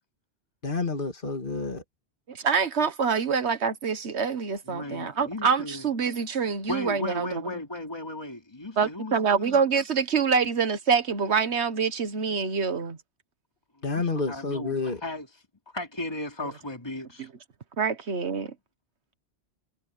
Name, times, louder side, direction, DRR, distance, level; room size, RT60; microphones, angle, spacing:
voice 1, 0.6-1.8 13.8-15.0, left 4 dB, 50° left, 2.7 m, -29 dB
voice 2, 2.3-7.4 8.8-13.0 17.8-18.5, right 6 dB, 80° right, 1.7 m, -26 dB
voice 3, 4.7-5.9 6.7-9.6 14.3-15.3 15.7-17.3, left 1 dB, 25° left, 3.1 m, -35 dB
omnidirectional pair, 1.1 m